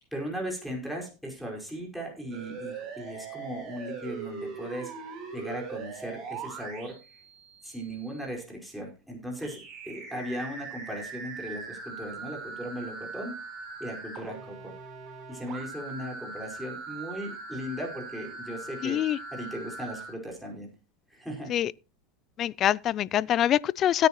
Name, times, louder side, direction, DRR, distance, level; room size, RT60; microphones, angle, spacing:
voice 1, 0.1-4.9 5.3-7.2 7.6-13.4 13.8-14.7 15.3-19.0 19.3-20.7 21.1-21.5, equal, ahead, 4.9 m, -37 dB
sound 1, 2.3-8.3 9.4-20.1, right 4 dB, 40° right, 7.7 m, -41 dB
voice 2, 18.8-19.2 21.5-21.7 22.4-24.1, left 11 dB, 35° left, 0.5 m, -24 dB
16.5 x 9.5 x 3.0 m
supercardioid pair, 125°, 0 cm